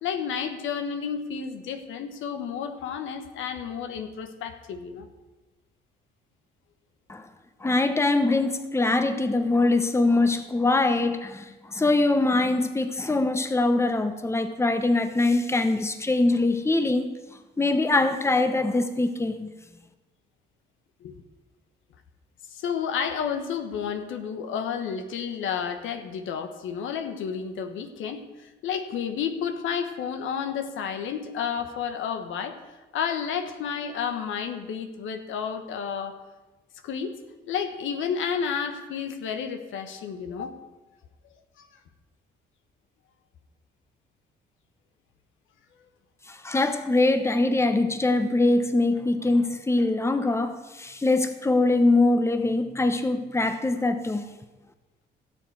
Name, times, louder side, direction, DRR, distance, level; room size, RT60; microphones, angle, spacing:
voice 1, 0.0-5.1 21.0-21.1 22.5-32.6 32.9-36.2 36.8-37.2 37.5-40.6, left 7 dB, 80° left, 1.1 m, -31 dB
voice 2, 7.6-17.1 17.6-19.5 46.3-54.3, left 2 dB, 15° left, 0.9 m, -23 dB
16.5 x 7.2 x 4.7 m
cardioid pair, 90°, 20 cm